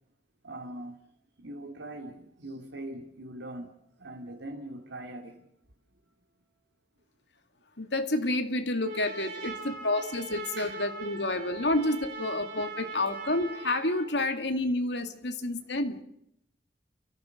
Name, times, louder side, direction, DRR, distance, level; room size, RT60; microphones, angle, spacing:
voice 1, 0.4-1.0 1.4-3.7 4.0-5.5 9.6-9.7 10.6-10.8, right 1 dB, 90° right, 1 dB, 2.5 m, -41 dB
voice 2, 7.8-16.0, left 2 dB, 75° left, 8 dB, 2.3 m, -29 dB
Trumpet, 8.8-14.1, right 4 dB, 50° right, 6.3 m, -41 dB
30.0 x 14.5 x 6.5 m, 0.75 s
head